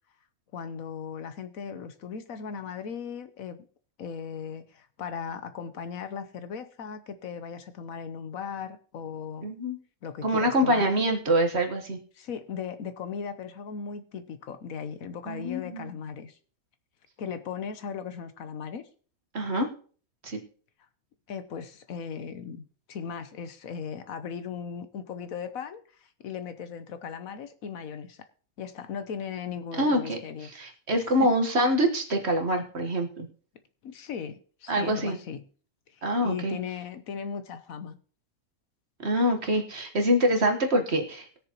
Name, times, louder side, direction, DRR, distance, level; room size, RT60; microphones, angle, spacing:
voice 1, 0.5-3.6 4.0-9.5 10.0-10.9 12.1-16.4 17.2-18.9 21.3-28.3 28.6-30.5 31.0-31.3 33.8-35.5 35.9-38.0, left 7 dB, 70° left, 10 dB, 1.3 m, -37 dB
voice 2, 9.4-9.8 10.2-12.0 15.3-15.9 19.3-19.7 20.2-20.4 29.8-30.2 30.5-33.3 34.7-35.2 36.0-36.6 39.0-41.2, equal, 50° right, 4 dB, 1.6 m, -25 dB
20.0 x 6.8 x 3.0 m, 0.43 s
omnidirectional pair, 1.5 m